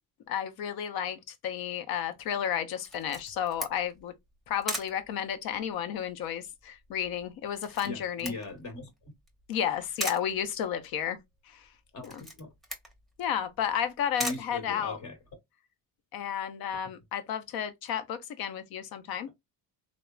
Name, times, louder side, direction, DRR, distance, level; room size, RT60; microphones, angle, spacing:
voice 1, 0.3-4.1 4.5-8.3 9.5-11.2 11.5-11.6 12.1-12.2 13.2-15.0 16.1-19.3, left 9 dB, 70° left, 0.7 m, -32 dB
Camera, 2.9-15.3, right 1 dB, ahead, 0.9 m, -41 dB
voice 2, 7.8-9.1 11.9-12.5 14.2-15.2 16.8-16.9, left 2 dB, 50° left, 1.3 m, -39 dB
3.0 x 2.0 x 2.3 m
supercardioid pair, 85°, 38 cm